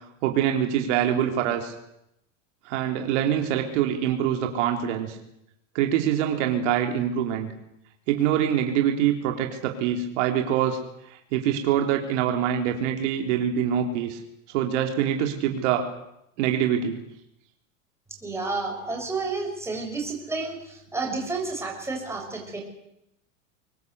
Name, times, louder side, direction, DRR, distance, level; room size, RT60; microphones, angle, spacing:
voice 1, 0.2-1.7 2.7-5.2 5.7-7.5 8.1-10.8 11.1-14.2 14.5-15.9 16.4-17.0, right 9 dB, 65° right, 3 dB, 3.7 m, -24 dB
voice 2, 18.2-22.6, right 3 dB, 5° right, 0 dB, 7.2 m, -31 dB
24.5 x 20.5 x 8.2 m, 0.82 s
supercardioid pair, 135°, 38 cm